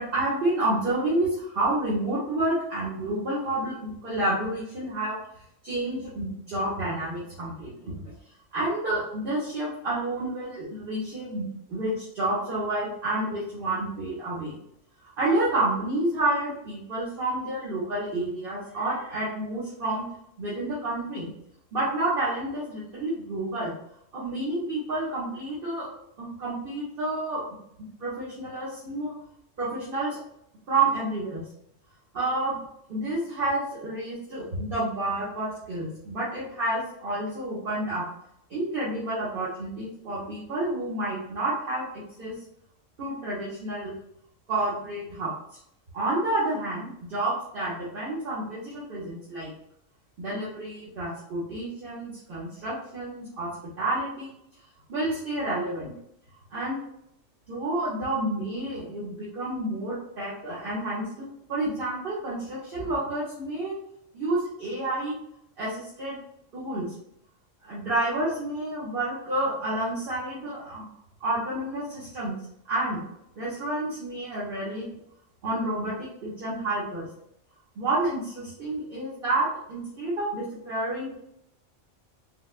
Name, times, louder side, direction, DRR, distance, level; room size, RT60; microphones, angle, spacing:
voice 1, 0.0-5.2 5.6-8.1 8.5-14.6 15.0-20.1 20.4-21.3 21.7-23.7 24.1-25.9 26.2-27.4 28.0-29.1 29.6-30.2 30.7-31.4 32.1-32.6 32.9-38.0 38.5-42.4 43.0-43.9 44.5-45.3 45.9-49.5 50.2-53.5 53.8-54.3 54.9-55.9 56.5-56.8 57.5-63.7 64.1-65.2 65.6-66.2 66.5-66.9 67.6-70.9 71.2-72.4 72.7-73.0 73.4-74.9 75.4-77.1 77.8-81.1, right 2 dB, 50° right, -8 dB, 1.0 m, -29 dB
3.9 x 2.2 x 2.4 m, 0.73 s
omnidirectional pair, 1.3 m